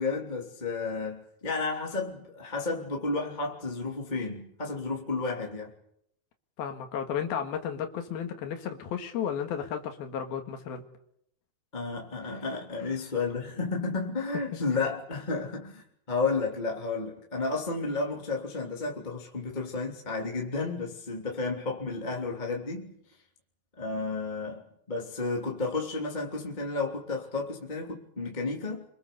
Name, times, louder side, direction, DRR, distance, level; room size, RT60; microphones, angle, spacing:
voice 1, 0.0-5.7 11.7-22.9 23.8-24.6 24.9-28.8, left 3 dB, 15° left, 2.9 m, -32 dB
voice 2, 6.6-10.8, left 8 dB, 85° left, 3.7 m, -33 dB
27.0 x 25.0 x 6.9 m
omnidirectional pair, 4.2 m